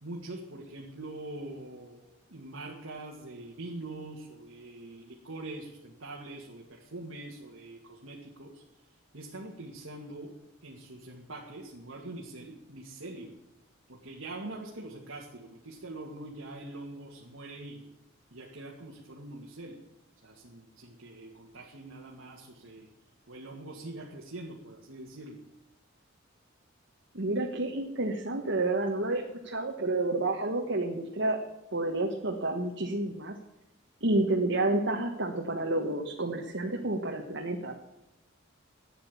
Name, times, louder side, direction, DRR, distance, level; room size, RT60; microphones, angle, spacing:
voice 1, 0.0-2.0 2.3-8.6 9.1-10.3 10.6-13.3 13.9-17.9 18.3-19.8 20.2-22.9 23.3-25.4, right 2 dB, 90° right, -2 dB, 2.1 m, -43 dB
voice 2, 27.1-31.4 31.7-33.3 34.0-37.8, right 2 dB, 60° right, 1 dB, 1.5 m, -30 dB
11.5 x 9.3 x 8.4 m, 0.94 s
head